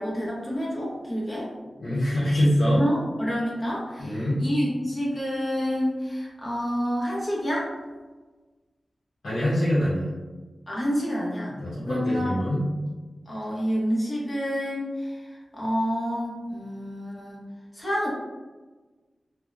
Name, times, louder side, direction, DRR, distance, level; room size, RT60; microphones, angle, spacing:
voice 1, 0.0-1.5 2.7-7.7 10.7-11.6 11.9-12.4 13.3-17.4 17.7-18.1, equal, 30° left, -6 dB, 0.9 m, -28 dB
voice 2, 1.8-2.8 4.0-4.4 9.2-10.1 11.6-12.6, equal, 75° left, -9 dB, 0.7 m, -24 dB
2.7 x 2.0 x 2.3 m, 1.3 s
wide cardioid pair, 85°, 0 cm